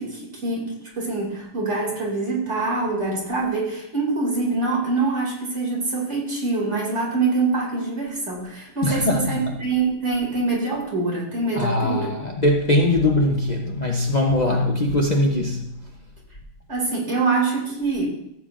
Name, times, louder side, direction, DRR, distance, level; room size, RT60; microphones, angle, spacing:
voice 1, 0.0-12.1 16.7-18.1, right 3 dB, 40° right, -3 dB, 2.8 m, -25 dB
voice 2, 8.8-9.5 11.5-15.8, left 1 dB, 85° left, 0 dB, 0.3 m, -21 dB
14.5 x 8.3 x 2.5 m, 0.80 s
omnidirectional pair, 2.0 m